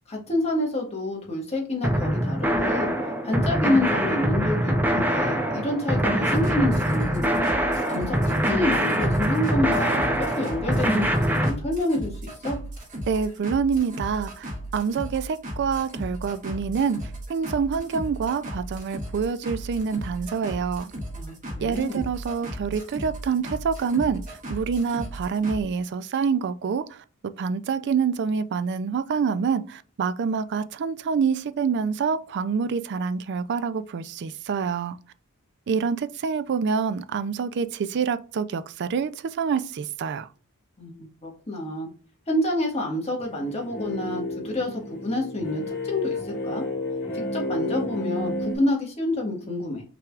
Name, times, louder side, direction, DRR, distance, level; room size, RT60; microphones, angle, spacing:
voice 1, 0.1-2.9 3.2-7.3 7.9-12.6 21.1-22.0 40.8-41.9 42.3-46.6 47.1-49.8, left 1 dB, 30° left, 1.5 m, -28 dB
sound 1, 1.8-11.5, equal, 10° right, 0.6 m, -24 dB
sound 2, 6.2-25.6, right 1 dB, 35° right, 1.4 m, -36 dB
voice 2, 13.1-20.9 21.6-27.0 27.4-35.0 35.7-40.3, right 6 dB, 55° right, 0.4 m, -26 dB
sound 3, 43.2-48.6, left 2 dB, 50° left, 2.2 m, -31 dB
5.8 x 3.4 x 2.4 m
head